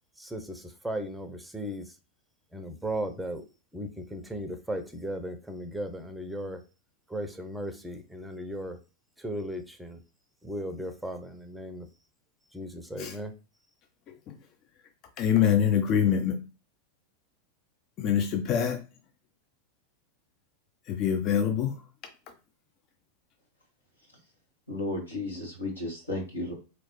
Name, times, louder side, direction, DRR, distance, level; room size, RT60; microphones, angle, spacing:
voice 1, 0.2-1.9 2.5-3.4 3.7-6.6 7.1-8.8 9.2-10.0 10.4-11.9 12.5-13.3, right 1 dB, 5° right, 0.6 m, -36 dB
voice 2, 15.2-16.4 18.0-18.8 20.9-21.8, left 8 dB, 35° left, 0.5 m, -25 dB
voice 3, 24.7-26.5, left 2 dB, 85° left, 1.8 m, -33 dB
3.9 x 3.1 x 3.0 m
figure-of-eight pair, 90°, 0 cm